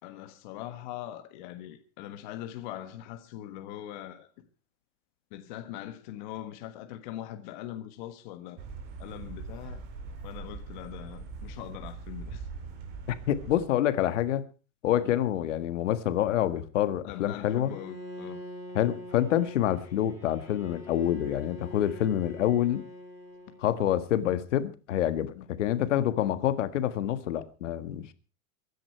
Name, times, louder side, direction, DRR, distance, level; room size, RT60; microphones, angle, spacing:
voice 1, 0.0-4.3 5.3-8.6 9.0-9.8 10.2-12.5 14.9-15.2 17.0-18.4 25.4-25.5, left 12 dB, 35° left, 1.5 m, -41 dB
sound 1, 8.6-13.6, right 4 dB, 25° right, 2.2 m, -41 dB
voice 2, 13.1-14.4 14.8-17.7 18.7-22.8 23.6-28.1, left 11 dB, 60° left, 1.7 m, -27 dB
Bowed string instrument, 17.6-23.9, left 1 dB, 10° right, 4.9 m, -44 dB
23.5 x 10.5 x 4.5 m
supercardioid pair, 180°, 42 cm